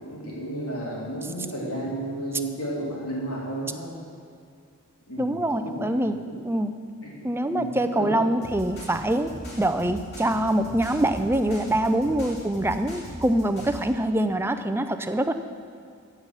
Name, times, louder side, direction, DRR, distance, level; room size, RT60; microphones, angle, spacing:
voice 1, 0.0-4.0 5.1-6.3 7.0-8.3, right 1 dB, 70° left, -5 dB, 3.4 m, -33 dB
voice 2, 5.2-6.2 6.5-6.7 7.2-15.3, right 1 dB, 10° right, 9 dB, 0.4 m, -24 dB
sound 1, 8.4-13.9, equal, 45° left, 2.8 m, -39 dB
15.0 x 5.6 x 7.4 m, 2.4 s
head